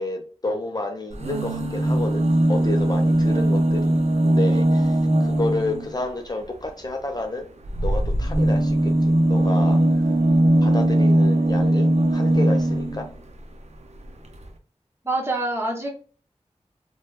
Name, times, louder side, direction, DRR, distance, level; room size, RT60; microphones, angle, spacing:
voice 1, 0.0-2.2 2.5-4.0 4.2-7.5 7.8-8.9 9.3-10.0 10.6-13.1, left 2 dB, 35° left, 3 dB, 0.5 m, -30 dB
sound 1, 1.1-6.0 7.6-13.1 14.1-14.2 14.4-14.5, right 1 dB, 70° right, 0.5 m, -20 dB
voice 2, 15.0-15.9, right 2 dB, 20° right, -2 dB, 1.2 m, -25 dB
2.8 x 2.2 x 3.2 m, 0.39 s
wide cardioid pair, 50°, 12 cm